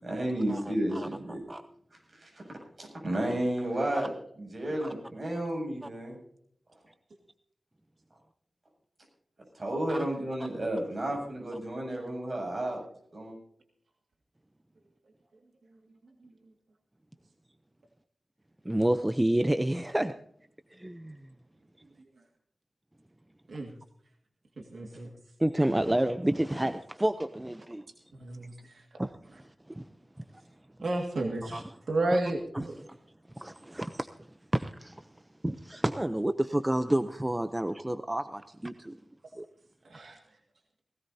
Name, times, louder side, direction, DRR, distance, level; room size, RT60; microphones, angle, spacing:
voice 1, 0.0-1.4 2.1-6.2 9.5-12.8 13.1-13.4, right 1 dB, 40° right, 0 dB, 7.3 m, -32 dB
voice 2, 0.9-1.6 3.9-4.1 4.8-4.9 9.9-10.0 18.6-20.1 20.7-21.2 25.4-27.8 29.0-29.1 29.4-29.8 31.4-31.6 32.5-32.6 33.4-34.1 34.5-35.0 35.4-39.0 39.4-39.5, right 1 dB, 15° right, 9 dB, 0.6 m, -29 dB
voice 3, 24.7-25.1 28.2-28.5 30.8-32.8 39.9-40.2, right 2 dB, 80° right, 1 dB, 2.0 m, -31 dB
19.0 x 17.0 x 2.8 m, 0.67 s
wide cardioid pair, 85°, 0 cm